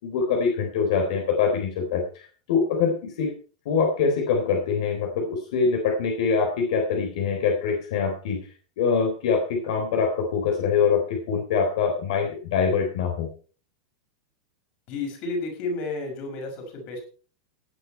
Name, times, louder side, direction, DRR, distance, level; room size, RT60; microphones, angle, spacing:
voice 1, 0.0-3.3 3.7-8.4 8.8-13.3, left 5 dB, 65° left, 3 dB, 3.7 m, -24 dB
voice 2, 14.9-17.1, left 3 dB, 40° left, 3 dB, 5.6 m, -31 dB
17.5 x 9.4 x 4.5 m, 0.40 s
supercardioid pair, 165°, 4 cm